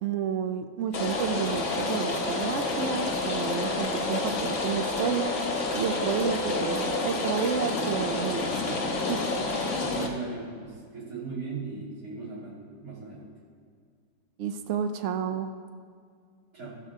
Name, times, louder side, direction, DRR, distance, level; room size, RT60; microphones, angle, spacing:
voice 1, 0.0-5.3 5.7-9.2 14.4-15.5, right 7 dB, 75° right, 8 dB, 0.6 m, -31 dB
Rain, 0.9-10.1, left 3 dB, 45° left, 1.3 m, -29 dB
voice 2, 9.8-13.3 16.5-16.7, right 4 dB, 50° right, -8 dB, 3.6 m, -38 dB
14.0 x 5.4 x 6.3 m, 2.1 s
omnidirectional pair, 2.0 m